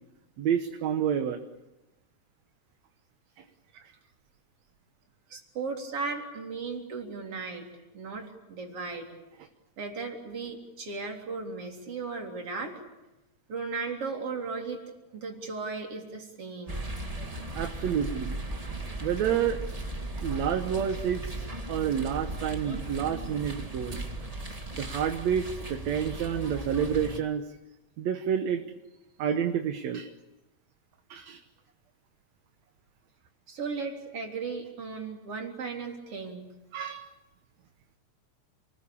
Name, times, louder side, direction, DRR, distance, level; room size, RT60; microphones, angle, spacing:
voice 1, 0.4-1.4 3.4-3.5 3.7-3.8 17.5-18.6 19.0-19.6 20.1-24.0 24.7-27.5 28.0-28.6 29.2-30.1 31.1-31.4 36.7-37.1, right 8 dB, 65° right, 7 dB, 2.4 m, -29 dB
voice 2, 5.3-7.7 7.9-9.1 9.8-12.8 13.5-14.8 15.1-16.9 33.5-36.5, right 4 dB, 50° right, 2 dB, 4.5 m, -36 dB
sound 1, 16.7-27.2, right 2 dB, 15° right, 1.4 m, -37 dB
29.0 x 20.5 x 8.6 m, 1.0 s
omnidirectional pair, 3.4 m